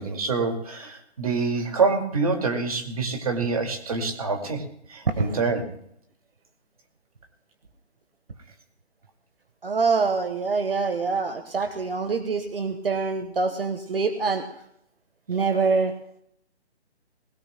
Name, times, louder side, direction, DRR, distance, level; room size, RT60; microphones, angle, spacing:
voice 1, 0.0-5.7, right 4 dB, 35° right, 4 dB, 2.2 m, -26 dB
voice 2, 9.6-14.4 15.3-15.9, right 4 dB, 55° right, 8 dB, 1.4 m, -25 dB
21.0 x 19.0 x 2.2 m, 0.70 s
hypercardioid pair, 180°, 33 cm